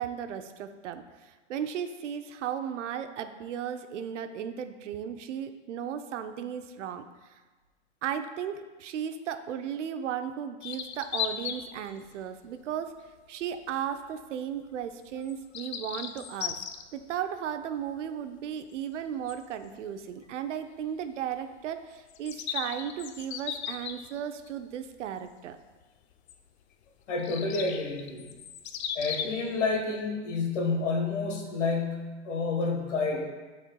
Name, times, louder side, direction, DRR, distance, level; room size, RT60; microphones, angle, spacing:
voice 1, 0.0-7.4 8.0-12.9 13.3-16.6 16.9-25.6, right 9 dB, 80° right, 9 dB, 0.6 m, -35 dB
sound 1, 10.6-11.7 12.2-12.4 13.3-13.4 15.2-16.8 19.3-19.4 19.6-19.7 22.1-24.5 26.3-26.4 27.2-29.4, left 8 dB, 60° left, 0.5 m, -36 dB
voice 2, 27.1-28.3 28.9-33.2, left 4 dB, 80° left, 2 dB, 1.4 m, -29 dB
11.0 x 4.4 x 2.2 m, 1.3 s
supercardioid pair, 155°, 36 cm